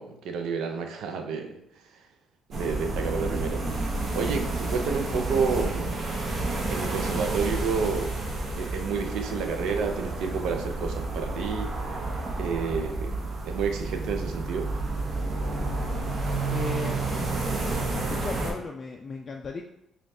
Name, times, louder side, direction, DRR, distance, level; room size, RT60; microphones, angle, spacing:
voice 1, 0.0-1.6 2.5-3.6 4.1-5.9 6.7-8.2 8.5-11.7 12.4-14.7, right 5 dB, 85° right, 5 dB, 0.5 m, -30 dB
sound 1, 2.5-18.5, right 2 dB, 50° right, 0.8 m, -30 dB
voice 2, 16.5-17.4 17.9-19.6, left 4 dB, 45° left, 1 dB, 0.3 m, -36 dB
5.0 x 2.3 x 2.7 m, 0.78 s
cardioid pair, 90°, 0 cm